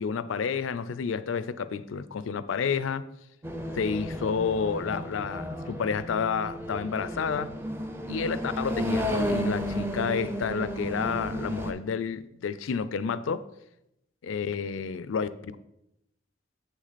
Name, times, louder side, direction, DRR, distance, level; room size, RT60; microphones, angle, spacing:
voice 1, 0.0-3.1 3.7-7.5 8.1-13.4 14.2-15.6, left 6 dB, 85° left, 0.4 m, -30 dB
sound 1, 3.4-11.7, equal, 10° right, 0.5 m, -33 dB
7.6 x 6.1 x 4.1 m
head